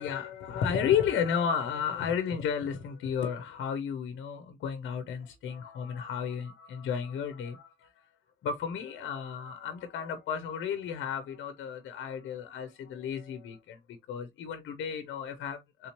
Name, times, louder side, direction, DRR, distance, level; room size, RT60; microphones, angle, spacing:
voice 1, 0.0-8.1 8.4-13.8 14.1-15.9, left 7 dB, 75° left, 0.7 m, -33 dB
3.7 x 2.8 x 2.8 m
cardioid pair, 90°, 20 cm